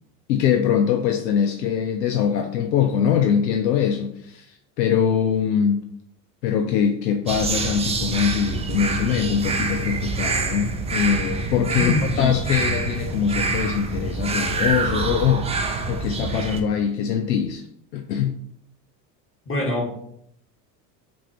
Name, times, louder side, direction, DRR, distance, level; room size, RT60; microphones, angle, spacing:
voice 1, 0.3-5.8 6.4-15.6 15.9-17.6 17.9-18.4, left 8 dB, 90° left, 5 dB, 0.5 m, -22 dB
sound 1, 7.3-16.6, right 4 dB, 15° right, 0.4 m, -26 dB
voice 2, 11.7-12.2 19.4-19.9, left 1 dB, 25° left, -1 dB, 1.6 m, -25 dB
6.0 x 2.7 x 2.9 m, 0.72 s
hypercardioid pair, 80°, 48 cm